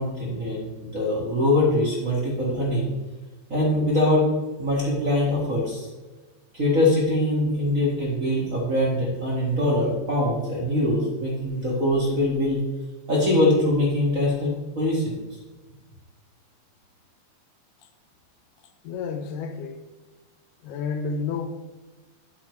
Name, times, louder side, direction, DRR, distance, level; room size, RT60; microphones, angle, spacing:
voice 1, 0.0-2.9 3.5-4.2 4.6-5.9 6.5-12.6 13.1-15.2, left 1 dB, 30° right, -5 dB, 1.8 m, -23 dB
voice 2, 18.8-19.8 20.6-21.5, left 5 dB, 80° left, 5 dB, 2.4 m, -30 dB
12.5 x 7.2 x 3.2 m, 1.2 s
omnidirectional pair, 3.7 m